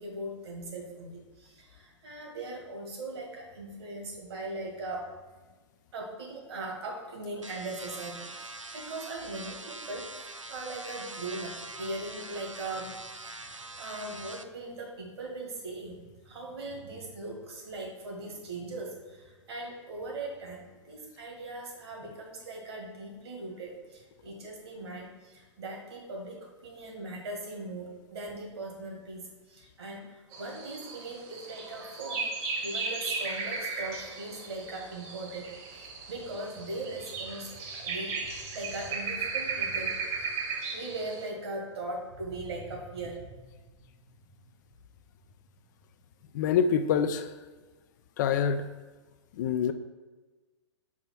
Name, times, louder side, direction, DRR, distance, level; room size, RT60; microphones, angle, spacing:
voice 1, 0.0-5.1 5.9-32.3 32.6-40.0 40.7-43.6, right 2 dB, 60° right, 0 dB, 2.0 m, -40 dB
sound 1, 7.4-14.4, right 2 dB, 90° right, 0.5 m, -43 dB
sound 2, 30.3-41.3, right 4 dB, 30° right, 1.2 m, -36 dB
voice 2, 46.3-47.4 48.2-48.7 49.3-49.7, left 7 dB, 40° left, 9 dB, 0.4 m, -26 dB
4.9 x 4.4 x 6.0 m, 1.3 s
figure-of-eight pair, 110°, 16 cm